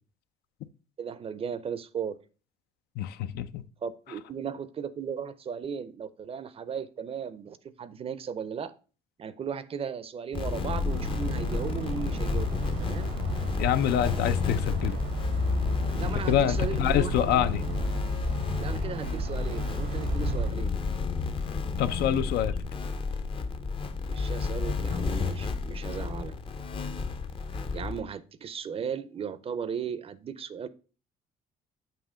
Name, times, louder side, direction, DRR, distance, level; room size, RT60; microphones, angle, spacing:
voice 1, 1.0-2.2 3.8-8.7 9.2-13.1 15.9-17.5 18.6-20.8 24.1-26.4 27.7-30.7, right 7 dB, 35° right, 0.5 m, -36 dB
voice 2, 3.0-3.6 13.6-15.0 16.3-17.6 21.8-22.6, left 10 dB, 75° left, 0.5 m, -26 dB
sound 1, 10.3-28.0, left 4 dB, 30° left, 0.6 m, -31 dB
sound 2, 10.9-20.5, right 6 dB, 90° right, 1.1 m, -36 dB
7.5 x 2.8 x 4.9 m
cardioid pair, 110°, 17 cm